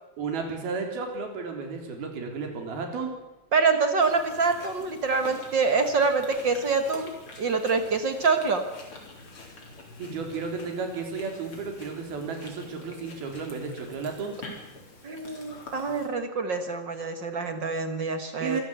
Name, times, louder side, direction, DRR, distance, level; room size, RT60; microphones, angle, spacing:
voice 1, 0.2-3.1 10.0-14.3 18.4-18.6, right 4 dB, 80° right, 3 dB, 5.6 m, -33 dB
voice 2, 3.5-8.7 15.0-18.6, right 4 dB, 50° right, 8 dB, 1.4 m, -26 dB
Chewing mastication, 4.0-16.1, left 2 dB, 35° left, 4.8 m, -46 dB
26.0 x 16.0 x 8.2 m, 1.0 s
omnidirectional pair, 4.3 m